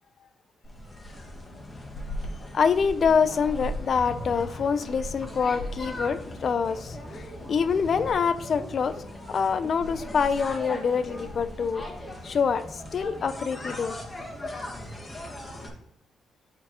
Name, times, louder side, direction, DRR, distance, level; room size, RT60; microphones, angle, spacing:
sound 1, 0.6-15.7, left 1 dB, 25° left, 1.5 m, -38 dB
voice 1, 2.5-9.0 9.3-11.8 12.2-14.0, left 6 dB, 50° left, 13 dB, 0.4 m, -25 dB
9.1 x 4.4 x 2.9 m, 0.76 s
cardioid pair, 90°, 0 cm